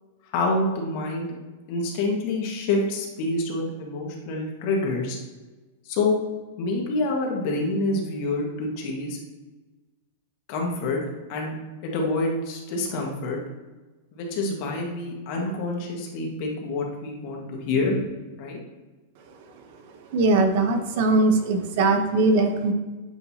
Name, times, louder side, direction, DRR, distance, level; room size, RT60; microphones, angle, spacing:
voice 1, 0.3-1.3 1.7-5.2 5.8-6.1 6.6-9.2 10.5-11.0 11.3-11.6 11.8-13.4 14.1-18.0 18.4-18.6, left 2 dB, 50° left, 0 dB, 1.6 m, -27 dB
voice 2, 20.1-22.7, right 3 dB, 55° right, 5 dB, 0.9 m, -20 dB
7.9 x 4.3 x 2.8 m, 1.2 s
supercardioid pair, 140°, 0 cm